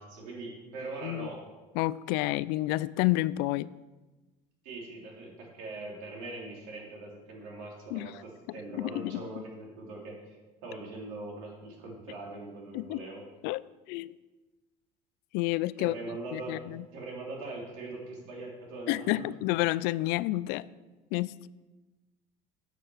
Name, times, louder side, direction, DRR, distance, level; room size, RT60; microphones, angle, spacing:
voice 1, 0.0-1.4 4.6-10.4 10.6-13.2 15.8-16.6 16.9-19.3, right 2 dB, 85° right, -1 dB, 3.2 m, -41 dB
voice 2, 1.8-3.7 7.9-8.1 8.7-9.4 12.7-13.0 13.4-13.6 13.9-14.2 15.3-15.9 16.3-16.8 18.9-20.7 21.1-21.5, left 18 dB, 75° left, 19 dB, 0.4 m, -30 dB
9.8 x 6.7 x 6.3 m, 1.2 s
cardioid pair, 120°, 17 cm